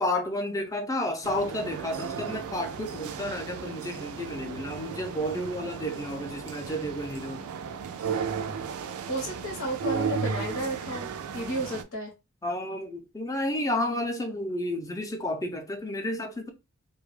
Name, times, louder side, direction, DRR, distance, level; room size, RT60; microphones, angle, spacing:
voice 1, 0.0-7.4 12.4-16.5, left 1 dB, 15° left, 0.4 m, -31 dB
sound 1, 1.2-11.8, right 6 dB, 80° right, 0.3 m, -35 dB
voice 2, 9.1-12.1, right 1 dB, 80° left, 0.8 m, -32 dB
2.2 x 2.0 x 3.1 m
head